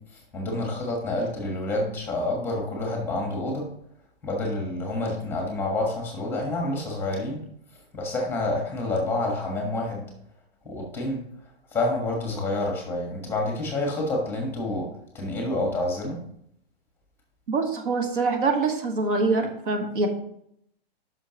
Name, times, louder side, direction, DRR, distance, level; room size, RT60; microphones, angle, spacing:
voice 1, 0.0-3.7 4.2-7.4 7.9-10.1 10.6-11.2 11.7-16.2, left 2 dB, 5° left, 0 dB, 1.3 m, -28 dB
voice 2, 17.5-20.1, right 3 dB, 55° right, 4 dB, 1.5 m, -24 dB
11.0 x 5.8 x 3.0 m, 0.71 s
hypercardioid pair, 160°, 32 cm